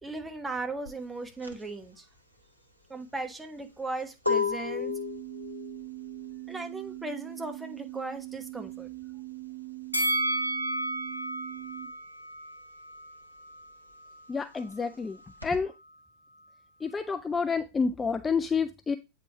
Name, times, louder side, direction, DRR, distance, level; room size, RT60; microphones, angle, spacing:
voice 1, 0.0-2.1 2.9-4.9 6.5-8.9, right 2 dB, 10° right, 1.1 m, -37 dB
sound 1, 0.9-11.1 11.4-15.6, left 5 dB, 90° right, 0.9 m, -36 dB
sound 2, 4.9-11.9, right 21 dB, 45° right, 0.9 m, -42 dB
Bell, 9.9-13.1 13.5-13.6, right 1 dB, 80° left, 2.5 m, -31 dB
voice 2, 14.3-15.2 15.4-15.7 16.8-19.0, left 5 dB, 15° left, 0.3 m, -29 dB
8.2 x 5.0 x 3.0 m
figure-of-eight pair, 90°, 0 cm